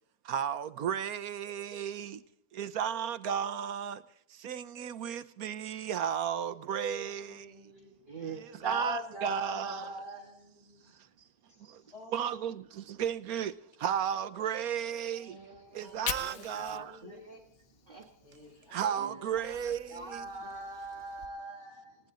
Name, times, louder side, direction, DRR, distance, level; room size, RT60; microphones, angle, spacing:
voice 1, 0.2-2.2 2.5-4.0 4.3-7.5 8.2-9.9 11.6-11.8 12.1-13.5 13.8-15.4 15.7-16.9 18.7-20.3, right 9 dB, 75° right, 1.3 m, -34 dB
voice 2, 6.8-8.1 8.5-11.6 11.9-12.5 15.2-15.3 15.7-17.4 18.2-19.7, left 2 dB, 45° left, 7.8 m, -55 dB
voice 3, 8.1-10.3 15.2-16.1 16.5-17.4 17.9-18.1 18.9-22.0, right 2 dB, 35° right, 1.8 m, -41 dB
Fire, 15.7-18.8 19.2-21.3, left 8 dB, 65° left, 1.4 m, -44 dB
19.5 x 18.0 x 3.8 m
omnidirectional pair, 1.6 m